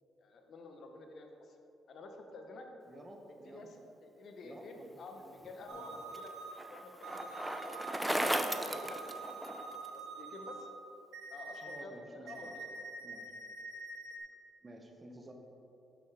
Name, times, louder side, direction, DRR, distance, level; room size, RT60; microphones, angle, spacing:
voice 1, 0.2-1.6 1.9-2.7 3.3-3.8 4.0-6.3 6.7-9.3 9.9-10.7 11.3-12.6, left 2 dB, 60° left, 4 dB, 0.9 m, -50 dB
voice 2, 2.9-3.9 4.4-5.0 5.2-5.3 5.7-5.9 11.6-12.5 13.0-13.3 14.6-15.3, right 1 dB, 20° right, 3 dB, 1.0 m, -52 dB
Bicycle, 5.4-9.9, right 1 dB, 5° right, 0.5 m, -36 dB
sound 1, 5.7-6.5 7.0-10.6 11.1-11.8 12.3-14.2, right 3 dB, 70° right, 1.0 m, -46 dB
7.0 x 6.1 x 4.8 m, 2.9 s
cardioid pair, 90°, 0 cm